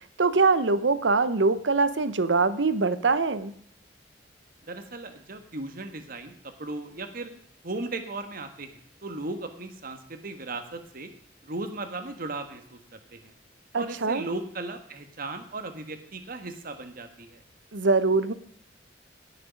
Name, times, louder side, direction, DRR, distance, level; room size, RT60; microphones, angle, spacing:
voice 1, 0.2-3.5 13.7-14.2 17.7-18.3, right 3 dB, 85° right, 14 dB, 0.9 m, -23 dB
voice 2, 4.7-6.3 6.6-7.3 7.6-11.1 11.4-13.3 13.7-17.4, right 2 dB, 55° right, 7 dB, 1.4 m, -37 dB
17.5 x 6.7 x 5.2 m, 0.64 s
head